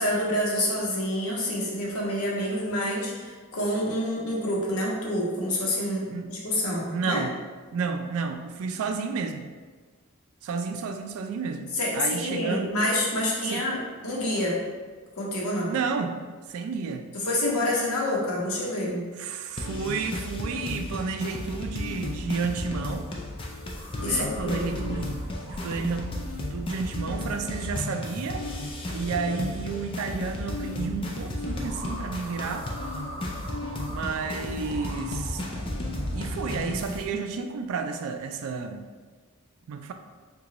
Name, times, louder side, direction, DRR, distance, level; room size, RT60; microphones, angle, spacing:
voice 1, 0.0-7.2 11.7-14.6 15.2-15.7 17.1-19.1 24.0-24.7, left 1 dB, 85° left, -3 dB, 0.8 m, -27 dB
voice 2, 6.8-7.3 7.7-9.5 10.4-12.9 13.5-13.7 15.7-16.2 16.5-17.0 19.2-23.1 24.0-25.2 25.5-26.2 26.5-28.5 28.9-32.7 33.9-35.6 36.1-38.9 39.7-39.9, right 5 dB, 75° right, 6 dB, 0.3 m, -31 dB
sound 1, 19.6-37.0, left 1 dB, 25° left, 0.3 m, -34 dB
sound 2, 23.6-27.9 31.4-37.0, equal, 25° right, 0.5 m, -40 dB
2.9 x 2.2 x 3.8 m, 1.4 s
head